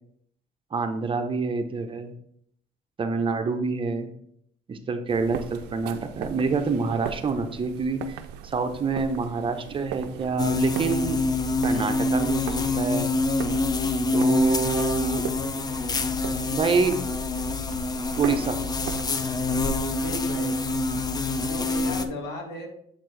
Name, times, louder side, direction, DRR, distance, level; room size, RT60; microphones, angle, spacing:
voice 1, 0.7-2.1 3.0-4.1 4.7-8.2 8.4-11.2 11.6-13.1 14.1-15.3 16.5-17.0 18.2-18.6, right 4 dB, 30° right, 7 dB, 0.6 m, -27 dB
sound 1, 5.1-19.0, right 9 dB, 90° right, 0.4 m, -39 dB
sound 2, 10.4-22.1, left 2 dB, 25° left, 0.5 m, -26 dB
voice 2, 20.0-20.6 21.4-22.7, left 1 dB, 75° left, 1 dB, 1.8 m, -35 dB
7.2 x 4.4 x 3.2 m, 0.69 s
cardioid pair, 110°, 17 cm